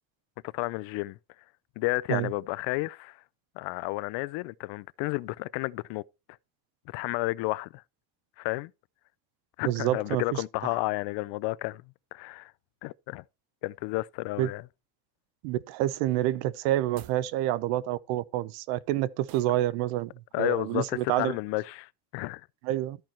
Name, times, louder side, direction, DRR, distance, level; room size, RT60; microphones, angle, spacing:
voice 1, 0.5-1.2 1.8-3.2 3.6-6.0 6.9-7.8 8.4-8.7 9.6-12.5 12.8-13.2 13.6-14.6 20.3-22.5, left 22 dB, 60° left, 0.5 m, -32 dB
voice 2, 9.6-10.8 14.4-14.5 15.4-20.1 20.4-21.3 22.6-23.0, right 14 dB, 85° right, 0.8 m, -28 dB
sound 1, 16.9-17.3 19.3-19.6, right 14 dB, 45° right, 0.6 m, -50 dB
13.0 x 4.5 x 4.3 m
cardioid pair, 135°, 50 cm